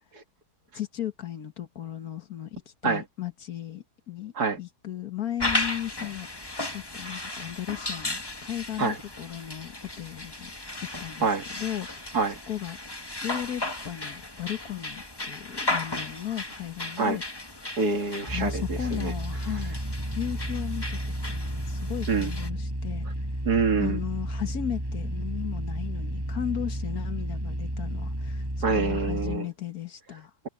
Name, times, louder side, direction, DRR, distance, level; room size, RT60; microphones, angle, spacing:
voice 1, 0.7-4.3 4.6-10.5 11.0-11.3 11.6-12.2 12.5-12.8 13.2-17.2 18.3-19.8 20.2-23.0 23.8-30.3, left 11 dB, 65° left, 1.8 m, -35 dB
sound 1, 5.4-22.5, left 2 dB, 15° left, 1.5 m, -35 dB
voice 2, 17.8-19.1 22.1-22.3 23.4-24.0 28.6-29.5, right 4 dB, 70° right, 2.7 m, -26 dB
sound 2, 18.3-29.4, equal, 15° right, 6.6 m, -32 dB
omnidirectional pair, 1.7 m